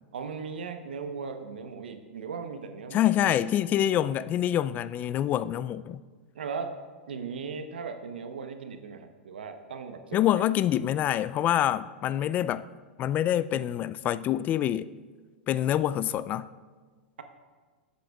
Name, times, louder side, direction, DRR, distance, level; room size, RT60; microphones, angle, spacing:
voice 1, 0.1-3.4 6.3-6.8 7.1-10.5, right 5 dB, 80° right, 0.8 m, -38 dB
voice 2, 2.9-6.0 10.1-12.6 13.0-14.9 15.5-16.5, left 11 dB, 30° left, 0.3 m, -26 dB
16.0 x 8.3 x 2.3 m
hypercardioid pair, 110°, 5 cm